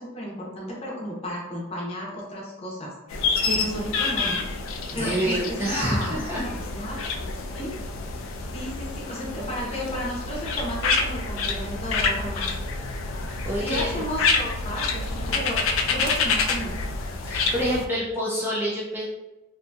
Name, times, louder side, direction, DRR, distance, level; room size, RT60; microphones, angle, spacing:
voice 1, 0.0-4.4 4.9-7.0 7.2-7.8 8.5-12.5 13.6-15.6 15.9-16.7, equal, 30° left, -3 dB, 0.6 m, -33 dB
sound 1, 3.1-17.9, left 4 dB, 65° left, 0.3 m, -28 dB
voice 2, 4.9-6.4 13.5-14.0 17.2-19.0, equal, 10° right, -6 dB, 0.3 m, -27 dB
2.6 x 2.5 x 2.2 m, 1.1 s
head